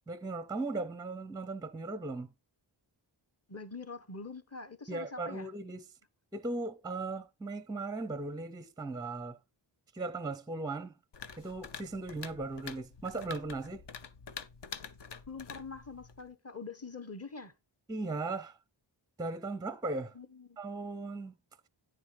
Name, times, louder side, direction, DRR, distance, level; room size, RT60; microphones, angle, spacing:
voice 1, 0.1-2.3 4.9-5.9 6.3-9.4 9.9-10.9 11.4-13.8 17.9-18.6 19.2-20.1 20.6-21.4, right 3 dB, 10° right, 0.5 m, -37 dB
voice 2, 3.5-5.5 15.3-17.5 20.1-20.6, left 4 dB, 30° left, 1.1 m, -44 dB
sound 1, 11.1-16.3, left 6 dB, 60° left, 0.8 m, -47 dB
9.5 x 7.3 x 3.3 m
wide cardioid pair, 90°, 49 cm